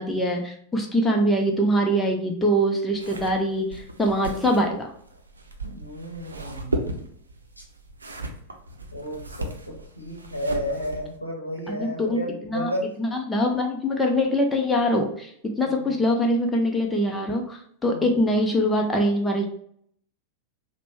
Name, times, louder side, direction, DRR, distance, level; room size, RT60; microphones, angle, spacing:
voice 1, 0.0-4.9 11.7-12.7 13.0-15.3 15.6-19.5, equal, 10° left, 1 dB, 0.6 m, -23 dB
sound 1, 2.9-11.2, right 2 dB, 75° right, 0.6 m, -36 dB
voice 2, 5.6-6.8 8.9-12.8 15.6-16.0 17.9-18.2, equal, 90° left, -1 dB, 0.8 m, -33 dB
5.2 x 2.1 x 3.0 m, 0.66 s
figure-of-eight pair, 90°, 0 cm